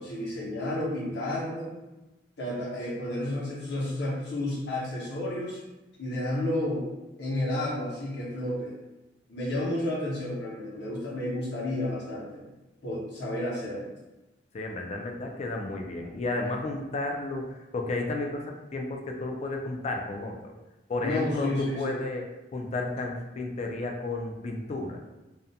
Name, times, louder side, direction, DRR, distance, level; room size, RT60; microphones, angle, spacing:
voice 1, 0.0-1.7 2.4-5.6 6.0-6.9 7.2-8.7 9.3-12.4 12.8-13.9 21.0-22.0, left 1 dB, 70° left, -5 dB, 0.8 m, -31 dB
voice 2, 14.5-20.5 20.9-25.0, left 2 dB, 40° left, 2 dB, 0.3 m, -32 dB
2.4 x 2.1 x 2.7 m, 1.0 s
head